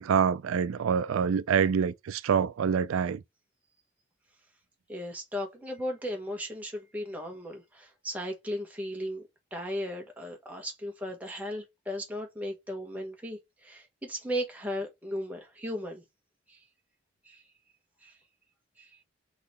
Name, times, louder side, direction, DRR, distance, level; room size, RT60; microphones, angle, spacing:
voice 1, 0.0-3.2, right 7 dB, 85° right, 0.4 m, -26 dB
voice 2, 4.9-9.2 9.5-16.0 16.5-16.6 17.2-17.4 18.0-18.1 18.8-18.9, equal, 5° right, 1.3 m, -36 dB
3.9 x 3.1 x 4.1 m
head